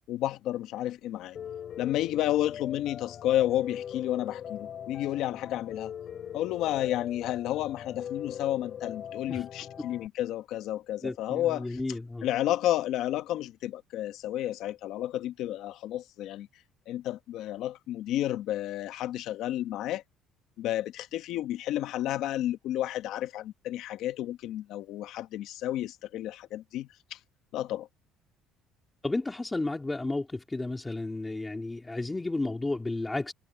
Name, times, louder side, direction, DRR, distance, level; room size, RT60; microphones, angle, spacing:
voice 1, 0.1-1.4 1.8-5.9 6.3-11.8 12.2-16.5 16.9-20.0 20.6-27.2 27.5-27.9, left 13 dB, 65° left, 1.2 m, -31 dB
Piano, 1.4-10.1, left 9 dB, 40° left, 5.1 m, -40 dB
voice 2, 11.0-12.3 29.0-33.3, left 2 dB, 10° left, 2.1 m, -32 dB
cardioid pair, 140°, 0 cm